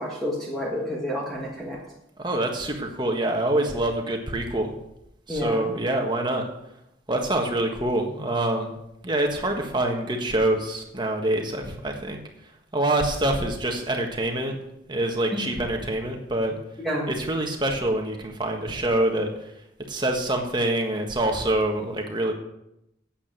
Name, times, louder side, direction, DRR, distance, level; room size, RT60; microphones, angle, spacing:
voice 1, 0.0-1.8 5.3-5.7 15.3-15.4 16.8-17.1, equal, ahead, -5 dB, 1.6 m, -29 dB
voice 2, 2.2-4.7 5.3-6.4 7.1-8.7 9.0-12.2 12.7-14.5 14.9-16.6 17.1-19.3 19.9-22.3, right 1 dB, 25° right, 2 dB, 1.5 m, -25 dB
8.7 x 8.5 x 7.6 m, 0.84 s
head